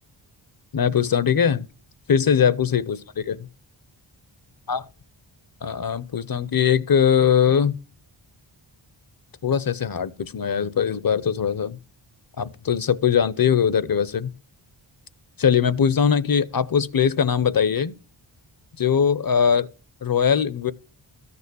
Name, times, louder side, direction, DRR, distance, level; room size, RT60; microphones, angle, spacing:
voice 1, 0.7-1.7 2.1-3.4 4.7-4.8 5.6-7.8 9.4-11.8 12.4-14.3 15.4-17.9 18.8-19.7 20.0-20.7, left 7 dB, 45° left, 0.7 m, -21 dB
13.5 x 6.9 x 6.8 m
wide cardioid pair, 90°, 48 cm